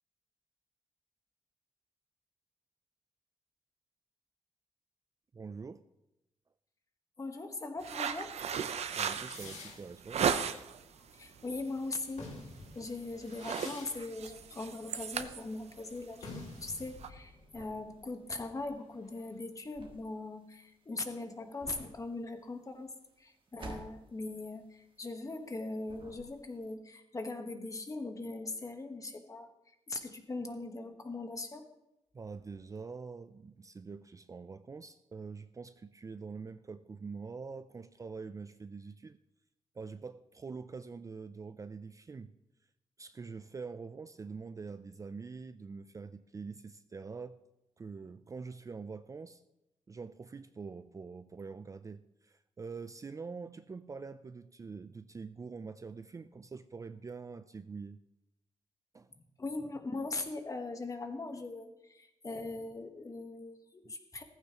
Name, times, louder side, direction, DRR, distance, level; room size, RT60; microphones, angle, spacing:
voice 1, 5.3-5.8 8.9-10.3 32.1-39.2 39.8-42.3 43.0-47.4 47.8-49.4 49.9-58.0 58.9-59.1 63.8-63.9, right 4 dB, 30° right, 11 dB, 0.4 m, -45 dB
voice 2, 7.2-8.3 11.2-12.3 12.7-22.9 23.2-29.5 29.9-31.7 59.4-64.2, left 2 dB, 30° left, 6 dB, 1.3 m, -40 dB
sound 1, 7.8-10.8 11.3-11.6 12.0-12.2 12.5-12.9 13.2-17.1, right 7 dB, 65° right, 0.7 m, -36 dB
sound 2, 9.0-11.5 12.0-19.5, left 3 dB, 80° left, 2.1 m, -51 dB
sound 3, 14.8-25.6 25.8-26.7, right 3 dB, 45° right, 1.7 m, -52 dB
15.0 x 14.5 x 3.0 m, 0.91 s
wide cardioid pair, 115°, 12 cm